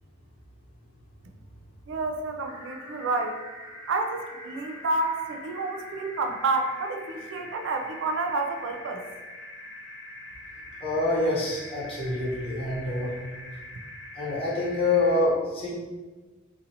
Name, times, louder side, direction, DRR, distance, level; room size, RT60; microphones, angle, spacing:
voice 1, 1.9-3.4 3.9-9.0, right 3 dB, 60° right, 4 dB, 0.4 m, -29 dB
sound 1, 2.4-15.2, left 1 dB, 80° left, 1.0 m, -43 dB
voice 2, 10.8-13.1 14.1-15.7, left 2 dB, 25° left, -6 dB, 0.9 m, -26 dB
2.7 x 2.7 x 3.9 m, 1.3 s
head